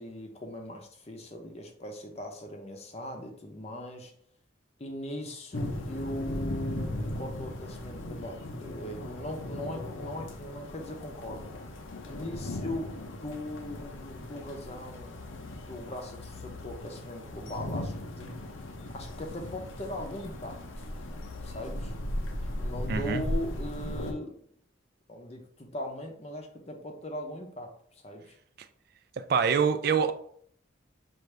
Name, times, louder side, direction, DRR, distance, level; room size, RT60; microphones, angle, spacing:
voice 1, 0.0-4.1 4.8-11.5 12.1-15.2 15.7-18.3 18.6-20.6 21.4-21.9 22.6-24.5 25.1-27.7 28.0-28.3, left 1 dB, 30° left, 0.7 m, -39 dB
sound 1, 5.5-24.1, left 1 dB, 80° left, 0.6 m, -37 dB
voice 2, 22.9-23.2 29.2-30.1, right 6 dB, 50° right, 0.3 m, -25 dB
5.9 x 2.6 x 3.3 m
head